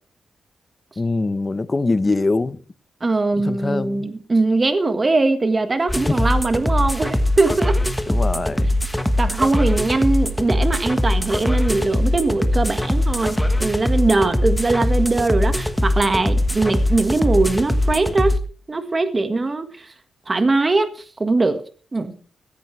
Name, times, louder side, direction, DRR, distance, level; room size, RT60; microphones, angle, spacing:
voice 1, 1.0-2.6 3.4-4.1 6.1-6.2 8.1-8.7, left 3 dB, 25° left, 0.9 m, -23 dB
voice 2, 3.0-7.8 9.2-18.4 18.7-19.9 20.3-21.6 21.9-22.1, right 3 dB, 30° right, 1.5 m, -21 dB
sound 1, 5.9-18.4, left 1 dB, 5° left, 1.3 m, -21 dB
15.5 x 14.0 x 3.3 m
wide cardioid pair, 115°, 0 cm